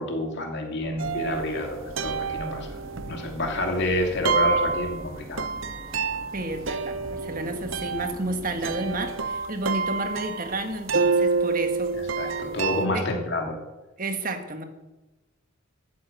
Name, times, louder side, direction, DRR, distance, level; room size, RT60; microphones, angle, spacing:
voice 1, 0.0-2.7 3.1-5.5 12.2-13.6, left 1 dB, 55° left, 2 dB, 2.8 m, -28 dB
sound 1, 0.8-9.2, right 1 dB, 20° right, 2.6 m, -43 dB
sound 2, 1.0-12.9, right 4 dB, 65° right, 0.8 m, -28 dB
voice 2, 6.3-12.0 12.9-13.1 14.0-14.6, right 2 dB, 40° right, 7 dB, 1.6 m, -31 dB
13.0 x 9.3 x 8.0 m, 1.1 s
head